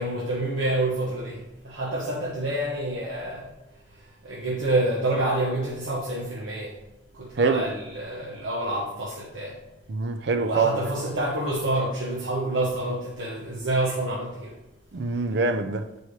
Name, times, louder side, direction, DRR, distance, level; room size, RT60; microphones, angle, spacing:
voice 1, 0.0-3.4 4.2-6.7 7.1-9.5 10.4-14.5, right 1 dB, 90° right, 1.1 m, -28 dB
voice 2, 9.9-10.8 14.9-15.9, right 4 dB, 60° right, 0.5 m, -24 dB
8.0 x 4.6 x 3.1 m
head